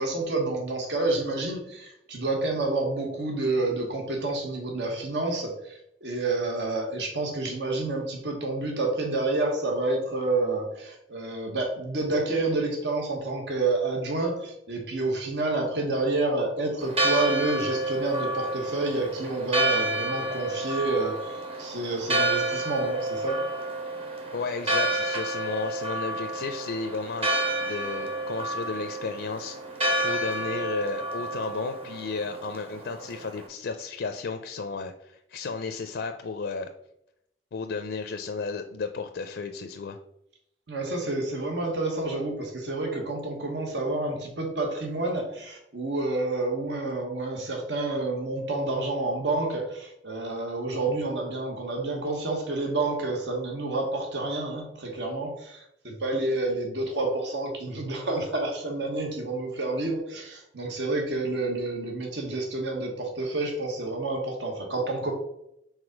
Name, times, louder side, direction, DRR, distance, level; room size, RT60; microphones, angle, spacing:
voice 1, 0.0-23.4 40.7-65.1, right 2 dB, 75° right, 2 dB, 1.1 m, -29 dB
Church bell, 16.8-33.5, right 2 dB, 35° right, 1.0 m, -30 dB
voice 2, 24.3-27.3 27.6-36.7 37.5-40.0, left 4 dB, 75° left, 7 dB, 0.4 m, -33 dB
4.8 x 3.8 x 5.1 m, 0.78 s
head